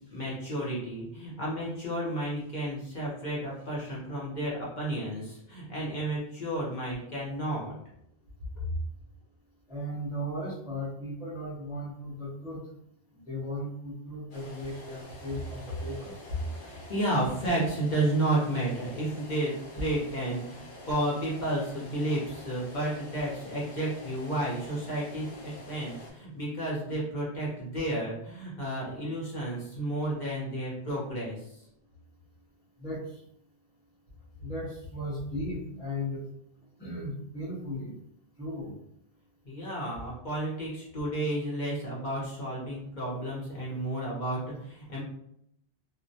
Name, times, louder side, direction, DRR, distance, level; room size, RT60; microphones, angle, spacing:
voice 1, 0.1-7.8 16.6-31.6 39.5-45.0, right 1 dB, 50° left, -6 dB, 0.8 m, -32 dB
voice 2, 9.7-12.6 13.1-16.2 32.8-33.2 34.4-36.2 36.8-37.9 38.4-38.7, equal, 5° right, -7 dB, 0.5 m, -36 dB
sound 1, 14.3-26.1, left 1 dB, 80° left, 1.0 m, -47 dB
2.2 x 2.1 x 2.7 m, 0.74 s
omnidirectional pair, 1.1 m